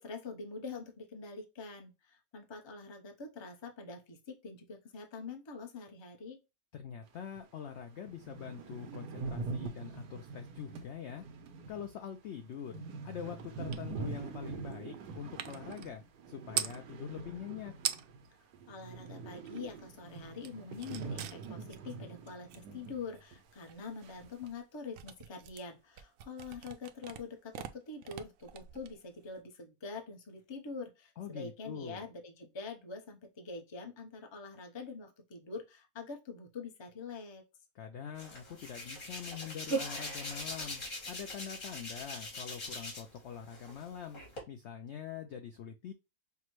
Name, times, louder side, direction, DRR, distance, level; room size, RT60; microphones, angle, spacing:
voice 1, 0.0-6.4 18.7-37.4, left 4 dB, 30° left, 4 dB, 0.5 m, -45 dB
voice 2, 6.7-11.2 11.7-17.7 31.2-32.0 37.8-40.8 41.1-44.2 44.5-45.9, left 8 dB, 75° left, 6 dB, 0.6 m, -44 dB
sound 1, 7.4-7.5 7.8-7.9 8.0-18.3 18.5-23.0 23.3-23.4 24.0-24.5, right 4 dB, 90° right, 1.3 m, -44 dB
sound 2, 13.7-13.9 14.2-16.8 17.5-17.6 17.8-18.3 18.7-19.8 20.1-29.4, right 10 dB, 70° right, 0.8 m, -43 dB
Hands, 38.2-43.2 43.5-44.4, equal, 50° left, 2.2 m, -40 dB
5.8 x 2.1 x 3.0 m, 0.25 s
omnidirectional pair, 1.7 m